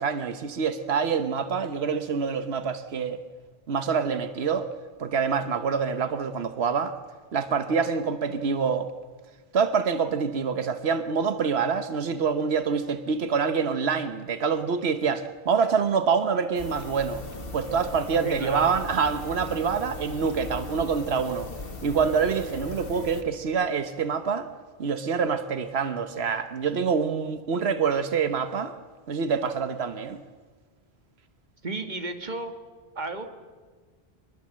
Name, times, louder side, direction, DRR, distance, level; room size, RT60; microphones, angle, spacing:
voice 1, 0.0-3.2 3.7-4.7 5.0-7.0 7.3-8.9 9.5-17.2 17.5-21.5 21.8-24.5 24.8-28.7 29.1-30.2, right 6 dB, 90° right, 10 dB, 1.2 m, -26 dB
sound 1, 16.5-23.2, left 3 dB, 65° left, 1.8 m, -39 dB
voice 2, 18.2-18.7 31.6-32.5 33.0-33.3, right 3 dB, 45° right, 6 dB, 2.1 m, -33 dB
25.0 x 20.5 x 7.6 m, 1.5 s
omnidirectional pair, 1.0 m